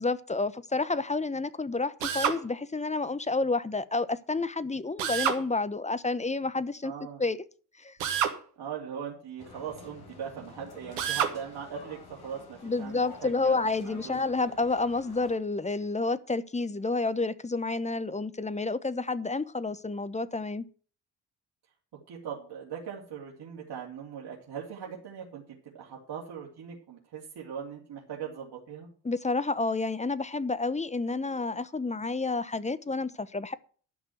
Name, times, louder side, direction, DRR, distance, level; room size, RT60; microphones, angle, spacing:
voice 1, 0.0-6.9 7.2-7.4 7.8-8.0 12.6-20.6 29.0-33.5, left 3 dB, 15° left, 0.9 m, -30 dB
Drill, 2.0-2.4 5.0-5.4 8.0-8.4 11.0-11.4, right 8 dB, 80° right, 1.5 m, -28 dB
voice 2, 6.8-7.2 8.6-14.2 22.1-25.4 25.7-28.9, right 7 dB, 55° right, 2.8 m, -40 dB
sound 1, 9.4-15.4, left 4 dB, 50° left, 4.6 m, -49 dB
12.0 x 6.0 x 7.8 m
hypercardioid pair, 50°, 48 cm